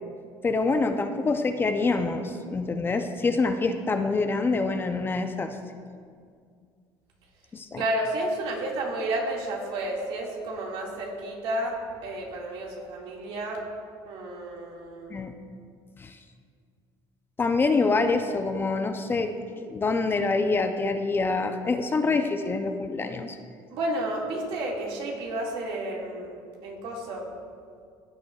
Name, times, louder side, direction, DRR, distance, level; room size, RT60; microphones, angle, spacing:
voice 1, 0.4-5.5 7.5-7.8 15.1-15.3 16.0-16.2 17.4-19.3 19.7-23.4, left 3 dB, 20° left, 7 dB, 0.5 m, -26 dB
voice 2, 7.8-11.8 12.0-13.6 14.1-15.2 23.7-26.4 26.6-27.2, right 1 dB, 70° right, -1 dB, 2.0 m, -31 dB
15.5 x 8.0 x 2.4 m, 2.1 s
cardioid pair, 115°, 10 cm